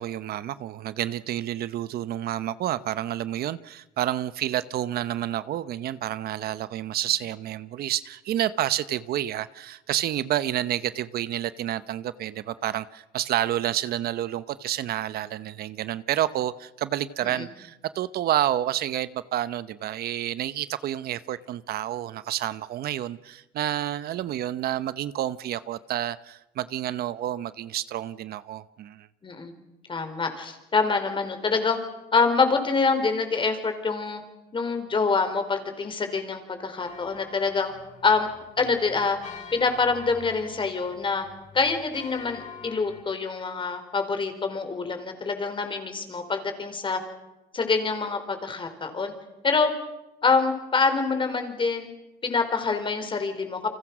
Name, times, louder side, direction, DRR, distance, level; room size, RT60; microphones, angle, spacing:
voice 1, 0.0-29.1, right 12 dB, 65° right, 0.9 m, -29 dB
voice 2, 29.2-29.5 29.9-31.8 32.1-34.2 34.5-37.7 38.0-38.3 38.6-39.2 39.5-41.3 41.5-47.0 47.5-49.1 49.4-49.7 50.2-51.9 52.2-53.7, left 4 dB, 30° left, 4.7 m, -25 dB
sound 1, 36.8-43.0, left 6 dB, 45° left, 7.8 m, -46 dB
30.0 x 25.0 x 6.1 m
cardioid pair, 110°, 17 cm